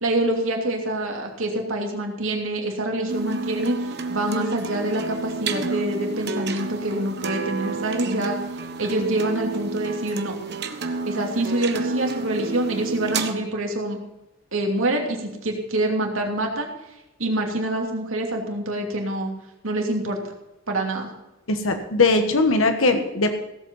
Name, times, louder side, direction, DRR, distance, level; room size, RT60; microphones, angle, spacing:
voice 1, 0.0-8.4 8.8-10.4 11.1-14.0 14.5-16.7 17.2-19.3 19.6-20.2 20.7-21.1, right 1 dB, 85° right, 1 dB, 2.8 m, -26 dB
sound 1, 3.1-13.3, right 4 dB, 55° right, 1.2 m, -30 dB
voice 2, 21.5-23.3, left 3 dB, 90° left, 7 dB, 1.4 m, -20 dB
17.0 x 8.1 x 5.6 m, 0.93 s
head